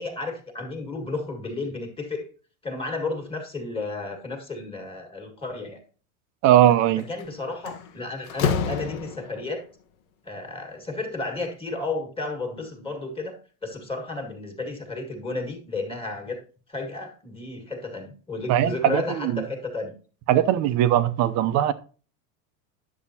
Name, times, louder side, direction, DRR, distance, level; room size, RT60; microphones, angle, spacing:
voice 1, 0.0-2.2 2.6-5.8 7.1-9.6 10.2-13.4 13.6-16.4 16.7-19.9, left 3 dB, 15° left, 1.7 m, -32 dB
voice 2, 6.4-7.0 18.5-19.4 20.3-21.7, right 11 dB, 40° right, 0.7 m, -20 dB
Slam, 7.0-7.2 7.7-9.5, left 6 dB, 90° left, 1.3 m, -28 dB
10.5 x 7.2 x 2.8 m
supercardioid pair, 150°, 41 cm